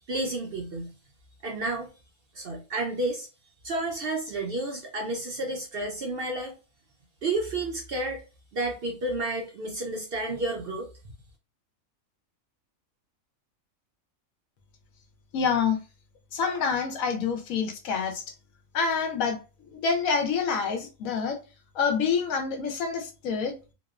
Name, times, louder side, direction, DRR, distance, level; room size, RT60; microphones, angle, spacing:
voice 1, 0.1-0.9 1.4-1.9 2.3-3.3 3.6-6.5 7.2-8.2 8.5-11.1, right 2 dB, 60° right, 0.6 m, -31 dB
voice 2, 15.3-15.8 16.3-18.2 18.7-19.4 19.7-21.4 21.7-23.5, left 5 dB, 80° left, 1.0 m, -27 dB
2.9 x 2.0 x 2.3 m
omnidirectional pair, 1.5 m